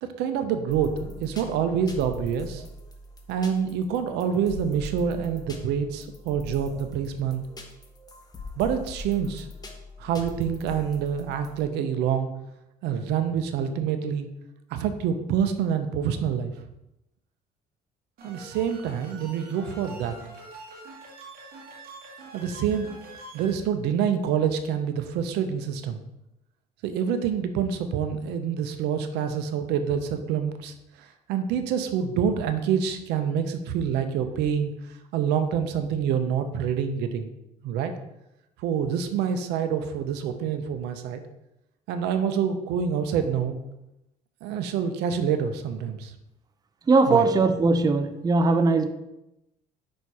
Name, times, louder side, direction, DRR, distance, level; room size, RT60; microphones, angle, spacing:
voice 1, 0.0-2.6 3.3-7.4 8.6-9.5 10.0-12.3 12.8-14.3 14.7-16.5 18.2-20.2 22.3-23.0 23.3-26.0 26.8-34.7 35.1-37.3 37.6-37.9 38.6-41.2 41.9-43.6 44.4-46.1 47.1-47.2, right 8 dB, 90° right, 0.7 m, -27 dB
sound 1, 0.7-11.6, left 2 dB, 25° left, 1.1 m, -42 dB
sound 2, 18.2-23.5, right 2 dB, 60° right, 1.6 m, -45 dB
voice 2, 46.9-48.9, right 3 dB, 25° right, 0.5 m, -20 dB
5.7 x 4.4 x 4.7 m
cardioid pair, 110°, 17 cm